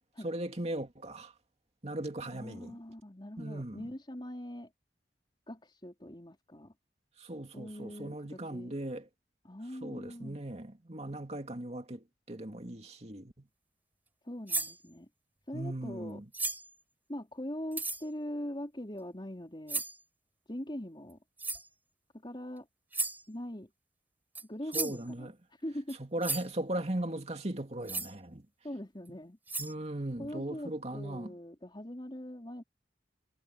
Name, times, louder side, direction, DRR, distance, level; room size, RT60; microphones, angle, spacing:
voice 1, 0.2-1.3 1.8-2.8 3.4-3.9 7.2-9.1 9.8-13.5 15.5-16.2 24.7-25.3 26.0-28.5 29.6-31.3, right 1 dB, 35° right, 2.5 m, -38 dB
voice 2, 2.3-4.7 5.5-6.7 7.5-8.8 9.4-10.4 14.2-15.1 15.5-16.2 17.1-19.8 20.5-21.2 22.1-22.7 23.3-23.7 24.4-25.3 25.6-26.0 28.6-29.4 30.2-32.6, equal, 25° left, 4.0 m, -42 dB
sound 1, 14.5-14.8 16.3-16.7 17.7-18.0 19.7-20.0 21.4-21.7 22.9-23.2 24.3-24.4 24.7-25.0 25.9-26.0 26.2-26.5 27.9-28.1 29.1-29.2 29.5-29.7, right 3 dB, 10° right, 3.9 m, -35 dB
head